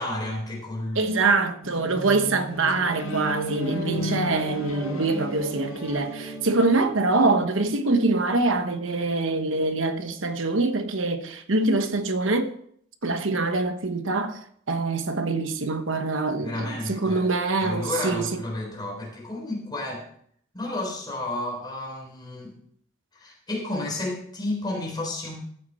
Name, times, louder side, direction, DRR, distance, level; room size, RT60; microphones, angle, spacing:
voice 1, 0.0-1.2 3.9-4.3 16.4-17.3 17.6-20.0 20.5-22.5 23.1-25.4, left 2 dB, 20° left, 3.8 m, -32 dB
voice 2, 0.9-12.5 13.0-14.4 14.7-18.3, right 3 dB, 65° right, 1.1 m, -24 dB
sound 1, 1.6-6.8, equal, 85° left, 4.8 m, -33 dB
14.0 x 8.8 x 4.2 m
head